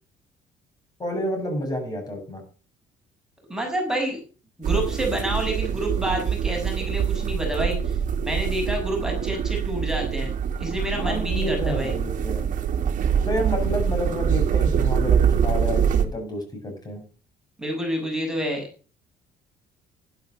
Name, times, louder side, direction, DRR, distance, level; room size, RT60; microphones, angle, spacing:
voice 1, 1.0-2.4 11.0-12.4 13.2-17.0, equal, 25° left, 3 dB, 7.6 m, -29 dB
voice 2, 3.5-4.2 4.6-8.0 8.2-10.3 10.6-11.9 17.6-18.7, equal, 5° right, 1 dB, 6.8 m, -28 dB
sound 1, 4.6-16.1, right 8 dB, 50° right, 2.3 m, -24 dB
12.0 x 12.0 x 6.6 m, 0.37 s
cardioid pair, 110°, 17 cm